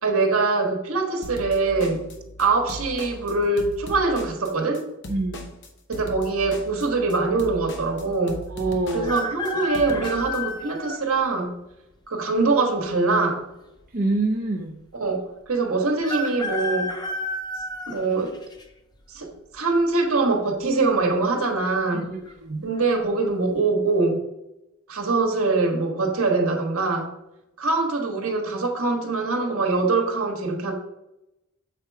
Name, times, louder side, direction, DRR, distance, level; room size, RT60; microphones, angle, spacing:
voice 1, 0.0-2.0 2.4-4.9 5.9-8.4 8.9-11.5 12.1-13.4 14.9-16.9 17.9-18.4 19.1-22.1 22.6-24.2 24.9-27.1 27.6-30.7, right 3 dB, 75° right, 2 dB, 1.4 m, -23 dB
sound 1, 1.2-10.4, equal, 55° left, 1.0 m, -38 dB
voice 2, 5.1-5.5 8.5-9.2 13.9-14.8 21.9-22.7, right 2 dB, 40° right, 0 dB, 0.6 m, -26 dB
sound 2, 9.0-11.0 11.7-11.8 12.9-13.5 13.8-13.9 14.1-14.2 16.0-18.6 19.2-19.6 20.7-21.1 21.3-21.4 21.9-22.3 22.8-23.0, left 1 dB, 20° left, 0.5 m, -31 dB
7.1 x 4.4 x 4.6 m, 0.88 s
head